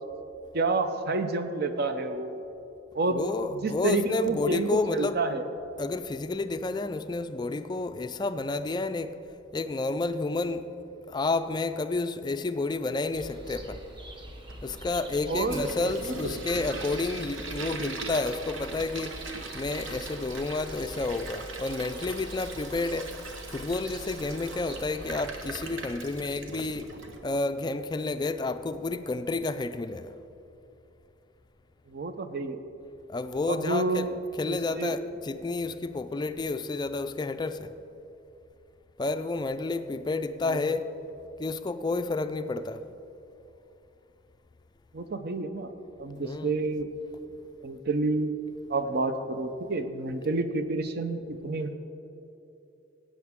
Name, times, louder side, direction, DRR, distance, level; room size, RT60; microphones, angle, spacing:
voice 1, 0.5-2.4 2.9-3.3 3.5-5.4 15.3-15.7 16.0-16.3 31.9-32.6 33.5-34.2 34.5-35.0 40.4-40.7 44.9-45.7 46.0-46.9 47.6-48.3 48.7-51.7, right 3 dB, 55° right, 0.7 m, -29 dB
voice 2, 3.1-5.2 5.8-9.1 9.5-10.7 11.1-13.8 14.6-19.2 19.5-23.1 23.5-26.9 27.2-30.1 33.1-34.1 34.4-37.7 39.0-40.8 41.4-42.8 46.2-46.5, left 3 dB, 20° left, 0.3 m, -30 dB
sound 1, 13.1-25.4, right 1 dB, 25° right, 0.9 m, -45 dB
Toilet flush, 14.5-27.2, right 3 dB, 85° right, 1.2 m, -41 dB
15.5 x 8.7 x 3.6 m
head